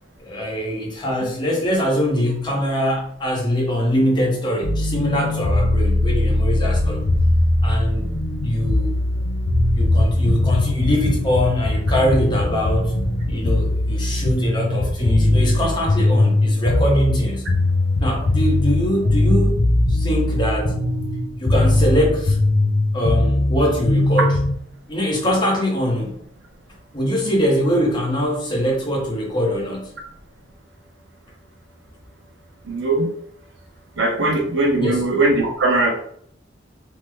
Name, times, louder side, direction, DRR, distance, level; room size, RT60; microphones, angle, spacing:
voice 1, 0.2-7.0 7.6-8.1 8.4-9.0 9.8-12.9 13.3-17.4 18.0-19.6 19.9-20.8 21.4-22.4 22.9-24.3 24.9-26.2 26.9-29.9 34.8-35.0, equal, 25° left, -1 dB, 0.8 m, -22 dB
sound 1, 4.6-24.6, left 1 dB, 85° left, 0.6 m, -20 dB
voice 2, 32.7-33.1 34.0-35.9, right 2 dB, 85° right, 1 dB, 0.8 m, -20 dB
3.2 x 2.1 x 3.3 m, 0.64 s
head